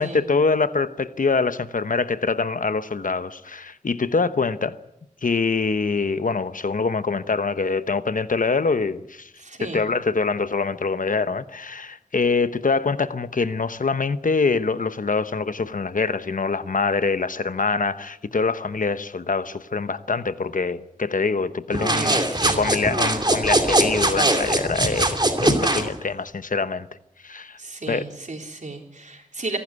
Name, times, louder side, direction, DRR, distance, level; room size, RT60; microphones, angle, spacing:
voice 1, 0.0-4.8 5.2-9.3 9.6-22.2 22.5-26.9 27.2-27.6 27.9-28.0, left 4 dB, 85° left, 1.0 m, -24 dB
voice 2, 9.4-9.8 21.9-22.8 27.6-29.6, right 3 dB, 65° right, 3.8 m, -33 dB
sound 1, 21.7-25.9, right 1 dB, 35° right, 2.7 m, -21 dB
26.0 x 12.0 x 9.7 m
wide cardioid pair, 65°, 13 cm